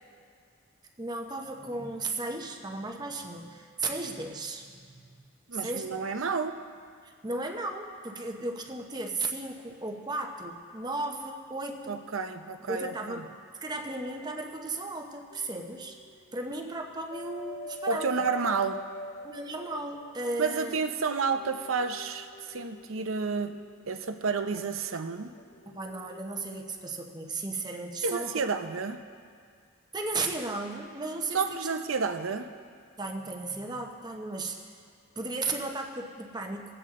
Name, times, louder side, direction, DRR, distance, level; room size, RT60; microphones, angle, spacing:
voice 1, 1.0-5.0 5.5-6.0 7.0-12.0 12.7-13.3 13.6-16.0 16.3-18.1 19.2-20.8 25.7-28.4 29.9-31.7 33.0-34.7 35.2-36.7, right 2 dB, 20° right, 2 dB, 0.8 m, -35 dB
voice 2, 5.5-6.6 11.9-13.2 17.9-18.9 20.4-25.3 28.0-29.0 31.3-32.5, right 5 dB, 85° right, 8 dB, 0.7 m, -30 dB
sound 1, 15.3-16.4 16.7-26.7, left 1 dB, 30° left, 0.4 m, -45 dB
21.0 x 8.1 x 3.7 m, 2.2 s
head